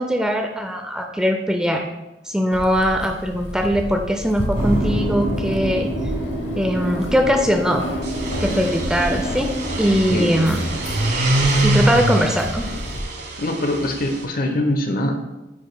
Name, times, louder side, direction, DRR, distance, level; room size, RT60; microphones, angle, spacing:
voice 1, 0.0-1.9 2.3-5.9 6.6-7.8 8.4-9.5 9.8-10.6 11.6-12.7, equal, 5° right, 4 dB, 0.4 m, -20 dB
Keys jangling, 2.5-13.0, left 1 dB, 80° left, 0.8 m, -32 dB
sound 1, 4.5-11.5, right 1 dB, 40° right, 1.6 m, -27 dB
sound 2, 7.9-14.2, right 1 dB, 60° right, 1.1 m, -24 dB
voice 2, 13.4-15.2, left 1 dB, 55° left, 5 dB, 0.8 m, -23 dB
9.7 x 5.2 x 2.2 m, 1.0 s
head